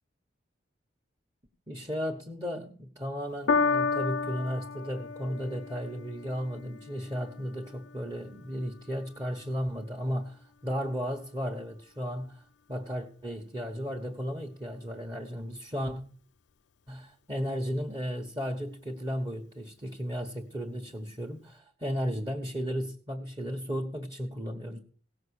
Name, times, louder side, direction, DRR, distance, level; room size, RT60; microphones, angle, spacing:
voice 1, 1.7-12.4 12.7-16.0 16.9-24.8, equal, 20° right, 1.4 m, -34 dB
Piano, 3.5-10.1 10.9-11.0, left 4 dB, 70° left, 0.5 m, -33 dB
17.0 x 6.6 x 6.6 m
head